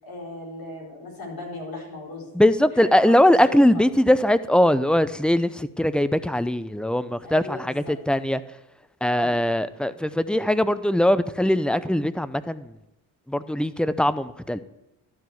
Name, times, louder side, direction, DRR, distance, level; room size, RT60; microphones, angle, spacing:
voice 1, 0.0-2.3 2.7-3.7 7.2-7.9 9.1-9.4, left 2 dB, 45° left, -2 dB, 4.6 m, -37 dB
voice 2, 2.3-8.4 9.0-12.7 13.3-14.6, left 1 dB, ahead, 14 dB, 0.5 m, -21 dB
12.5 x 4.7 x 7.8 m, 0.90 s
hypercardioid pair, 45°, 47 cm